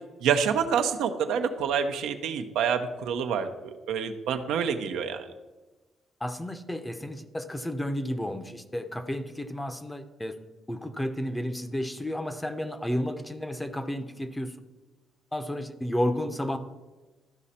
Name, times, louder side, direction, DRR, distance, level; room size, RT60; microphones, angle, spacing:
voice 1, 0.2-5.3, right 7 dB, 85° right, 6 dB, 0.7 m, -27 dB
voice 2, 6.2-10.4 10.7-14.5 15.3-16.6, equal, 10° left, 10 dB, 0.7 m, -32 dB
13.0 x 5.0 x 4.2 m, 1.2 s
cardioid pair, 90°, 0 cm